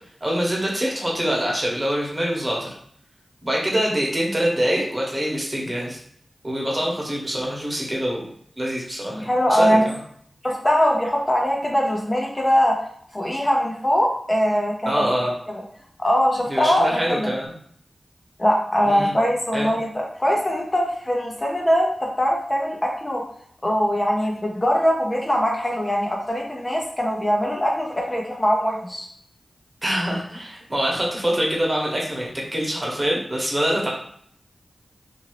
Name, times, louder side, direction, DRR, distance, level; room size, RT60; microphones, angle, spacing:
voice 1, 0.2-2.7 3.4-6.0 6.4-8.3 8.6-10.0 14.9-15.3 16.5-17.5 18.9-19.1 19.5-19.7 29.8-33.9, equal, 30° right, -2 dB, 1.1 m, -25 dB
voice 2, 9.1-9.9 10.4-12.8 13.1-15.1 16.0-17.3 18.4-21.9 22.2-23.2 23.6-29.1, equal, 30° left, -1 dB, 0.7 m, -21 dB
2.7 x 2.6 x 3.0 m, 0.63 s
cardioid pair, 45°, 0 cm